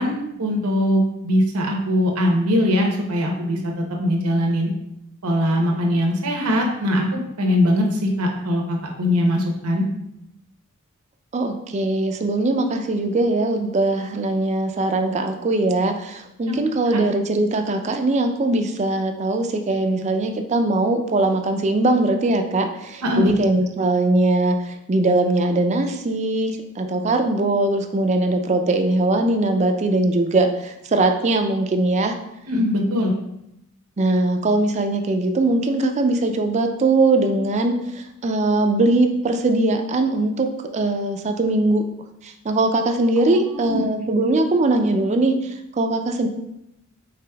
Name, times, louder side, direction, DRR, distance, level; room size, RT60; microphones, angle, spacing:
voice 1, 0.0-4.7 5.2-9.8 16.5-16.6 16.9-17.0 23.0-23.3 32.5-33.1 43.3-43.8, left 1 dB, 85° right, 1 dB, 0.8 m, -21 dB
voice 2, 11.3-32.1 34.0-40.5 40.7-41.8 42.2-46.3, right 2 dB, 30° right, 6 dB, 0.4 m, -21 dB
5.0 x 3.9 x 2.2 m, 0.82 s
head